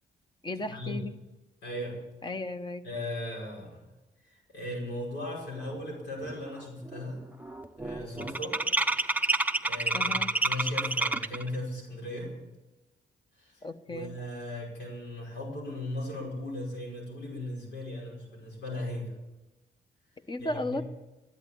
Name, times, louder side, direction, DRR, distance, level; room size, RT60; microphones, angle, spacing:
voice 1, 0.4-1.1 2.2-2.9 9.9-10.3 13.6-14.1 20.3-20.8, left 2 dB, 25° left, 10 dB, 1.0 m, -35 dB
voice 2, 1.6-2.0 2.8-3.8 4.2-7.2 7.8-8.6 9.3-12.3 13.4-19.1 20.4-20.8, left 1 dB, 75° left, -1 dB, 5.5 m, -37 dB
sound 1, 5.8-5.9 6.2-6.6 6.9-11.5, right 2 dB, 10° right, 0.7 m, -29 dB
14.0 x 10.5 x 8.4 m, 1.1 s
cardioid pair, 85°, 18 cm